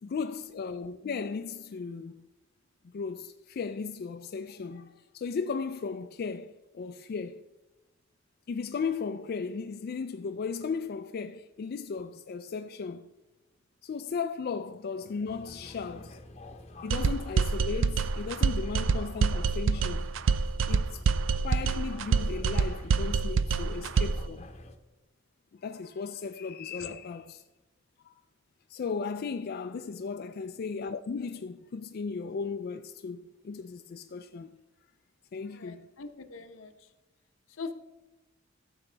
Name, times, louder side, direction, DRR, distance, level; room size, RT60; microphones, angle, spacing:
voice 1, 0.0-2.3 2.9-7.4 8.5-13.1 13.8-16.2 16.8-20.1 20.7-21.0 21.4-24.4 25.5-27.4 28.0-28.1 28.7-34.6 35.3-35.9, left 5 dB, 50° left, 0.3 m, -36 dB
sound 1, 15.2-24.8, left 1 dB, 30° left, 0.8 m, -48 dB
sound 2, 16.9-24.3, right 5 dB, 65° right, 0.4 m, -26 dB
voice 2, 35.5-36.9 37.5-37.7, left 4 dB, 75° left, 0.8 m, -42 dB
13.5 x 7.0 x 3.3 m
head